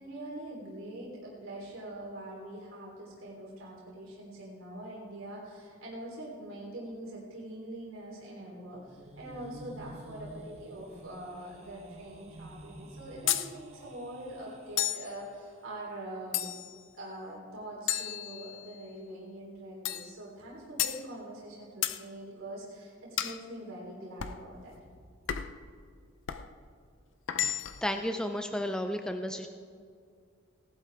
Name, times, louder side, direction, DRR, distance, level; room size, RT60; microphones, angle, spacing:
voice 1, 0.0-16.5 17.0-24.9, right 1 dB, 80° right, -5 dB, 3.5 m, -43 dB
sound 1, 8.6-15.6, right 1 dB, 30° right, 1.2 m, -50 dB
sound 2, 13.3-13.5 14.8-15.1 16.3-16.8 17.9-18.8 19.8-20.1 20.8-21.0 21.8-22.0 23.2-23.4 24.2-24.4 25.3-25.6 26.3-26.5 27.3-27.9, left 11 dB, 60° left, 0.5 m, -32 dB
voice 2, 27.8-29.5, equal, 5° left, 6 dB, 0.4 m, -32 dB
18.0 x 11.5 x 3.5 m, 2.2 s
head